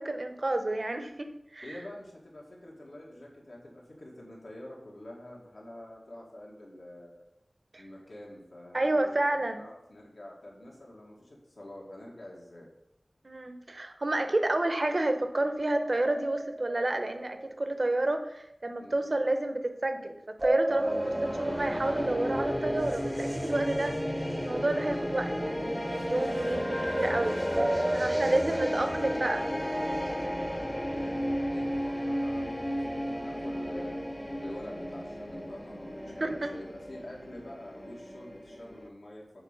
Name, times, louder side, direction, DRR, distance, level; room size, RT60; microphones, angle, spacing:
voice 1, 0.0-1.8 7.7-7.8 8.7-9.7 13.2-25.8 26.1-27.3 27.9-29.5 36.2-36.5, right 2 dB, 50° right, 7 dB, 0.8 m, -30 dB
voice 2, 1.6-7.2 7.8-12.7 18.8-19.2 27.0-28.6 30.1-34.0 34.4-39.4, left 1 dB, 75° left, -3 dB, 2.0 m, -47 dB
sound 1, 15.6-17.7 20.4-23.3 27.5-29.8, right 1 dB, 35° right, 0.4 m, -34 dB
sound 2, 20.7-38.9, equal, 15° left, 0.8 m, -33 dB
7.0 x 4.3 x 5.2 m, 0.84 s
wide cardioid pair, 65°, 0 cm